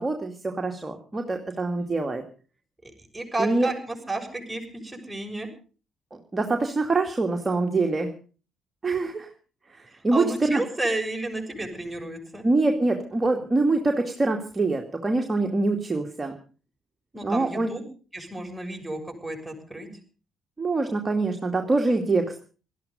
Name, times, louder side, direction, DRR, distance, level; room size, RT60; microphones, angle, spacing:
voice 1, 0.0-2.2 3.4-3.7 6.1-8.1 8.8-9.3 9.7-10.6 12.4-16.4 17.2-17.7 20.6-22.4, right 3 dB, 25° right, 3 dB, 2.4 m, -25 dB
voice 2, 2.8-5.5 10.1-12.4 17.1-17.8 18.1-19.9, right 2 dB, 5° right, 2 dB, 6.6 m, -32 dB
19.0 x 13.5 x 5.4 m, 0.40 s
figure-of-eight pair, 45°, 0 cm